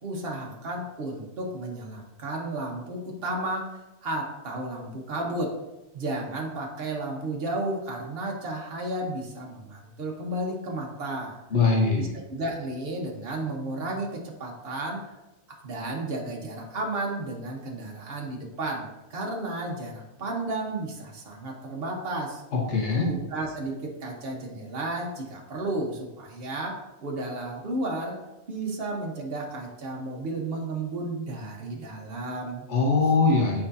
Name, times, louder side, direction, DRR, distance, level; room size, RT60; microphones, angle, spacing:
voice 1, 0.0-5.6 5.9-11.4 12.0-15.0 15.6-22.4 23.1-28.2 28.5-32.7, right 2 dB, 55° right, -1 dB, 1.3 m, -33 dB
voice 2, 11.5-12.1 22.5-23.1 32.7-33.6, left 4 dB, 90° left, -2 dB, 1.6 m, -22 dB
8.4 x 4.8 x 2.7 m, 0.99 s
omnidirectional pair, 1.2 m